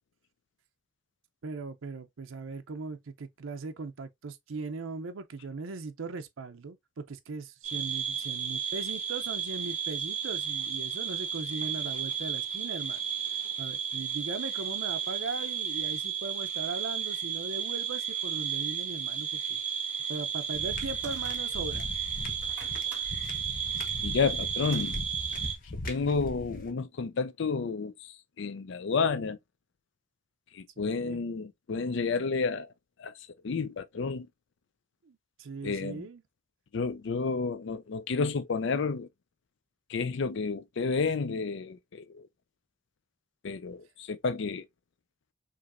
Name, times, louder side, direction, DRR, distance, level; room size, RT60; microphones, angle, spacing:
voice 1, 1.4-13.0 13.6-19.6 20.1-21.9 30.8-31.2 35.1-36.2, right 4 dB, 85° right, 0.6 m, -39 dB
sound 1, 7.6-25.6, right 7 dB, 40° right, 2.4 m, -33 dB
sound 2, 20.4-21.8 22.2-24.9, right 3 dB, 5° right, 1.9 m, -50 dB
sound 3, 20.5-26.7, left 1 dB, 45° left, 0.9 m, -40 dB
voice 2, 24.0-25.0 25.9-29.4 30.5-32.7 33.0-33.1 33.4-34.3 35.6-36.1 36.7-39.1 39.9-42.3 43.4-44.6, left 4 dB, 65° left, 0.5 m, -31 dB
4.9 x 3.0 x 2.5 m
head